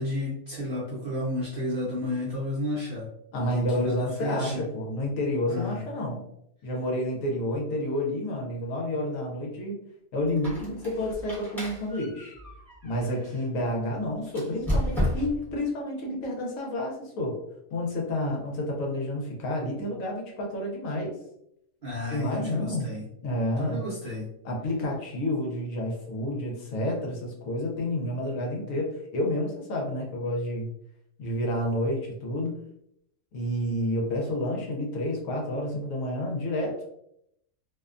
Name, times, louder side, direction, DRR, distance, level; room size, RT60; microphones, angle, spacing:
voice 1, 0.0-3.1 3.5-4.6 5.5-5.8 21.8-23.0 23.6-24.3, left 1 dB, 50° right, -7 dB, 0.7 m, -32 dB
voice 2, 3.3-6.2 6.6-9.8 10.1-12.3 12.8-17.4 17.7-21.1 22.1-22.9 23.2-23.8 24.4-30.7 31.2-32.6 33.3-36.8, left 1 dB, 70° left, -1 dB, 1.0 m, -29 dB
Squeak, 10.3-13.5 14.3-15.5, left 1 dB, ahead, 0.7 m, -32 dB
2.6 x 2.1 x 2.4 m, 0.76 s
omnidirectional pair, 1.6 m